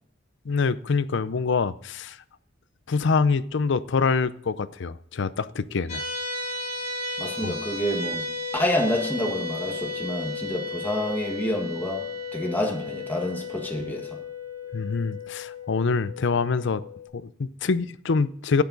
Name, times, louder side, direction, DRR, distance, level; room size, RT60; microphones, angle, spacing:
voice 1, 0.5-2.2 2.9-6.0 7.4-7.6 14.7-16.8 17.1-18.6, left 4 dB, 65° left, 0.5 m, -25 dB
sound 1, 5.9-17.1, left 3 dB, 40° left, 2.9 m, -34 dB
voice 2, 7.2-8.3 8.5-14.2, left 1 dB, 10° left, 1.6 m, -28 dB
12.0 x 9.0 x 4.0 m
head